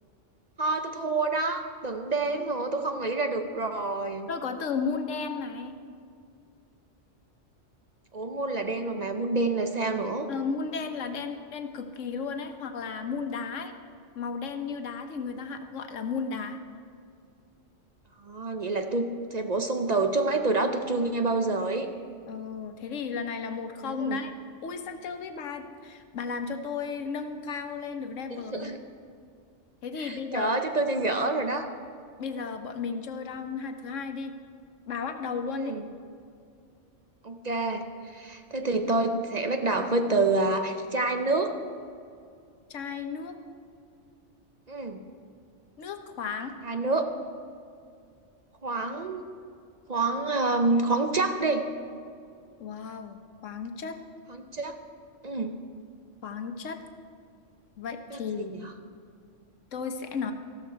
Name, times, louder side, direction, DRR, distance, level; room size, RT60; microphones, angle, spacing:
voice 1, 0.6-4.3 8.1-10.3 18.2-21.9 23.8-24.2 28.3-28.8 30.0-31.7 35.5-35.8 37.2-41.5 44.7-45.0 46.6-47.1 48.6-49.3 49.9-51.6 54.3-54.7 55.2-55.5 58.1-58.7, right 3 dB, 40° right, 6 dB, 0.7 m, -28 dB
voice 2, 4.3-5.8 10.3-13.7 14.1-16.6 22.3-24.3 24.6-28.7 29.8-30.6 32.2-34.3 34.9-35.7 42.7-43.4 45.8-46.5 52.6-53.2 53.4-54.0 56.2-56.8 57.8-58.5 59.7-60.3, left 5 dB, 90° left, 7 dB, 1.3 m, -34 dB
14.0 x 12.5 x 4.5 m, 2.3 s
omnidirectional pair, 1.3 m